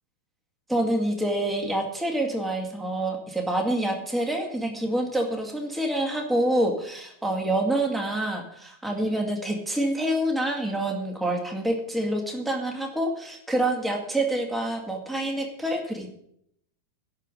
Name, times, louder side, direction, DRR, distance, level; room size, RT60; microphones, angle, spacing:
voice 1, 0.7-16.1, right 1 dB, ahead, 1 dB, 0.6 m, -27 dB
12.0 x 7.5 x 8.9 m, 0.71 s
omnidirectional pair, 4.1 m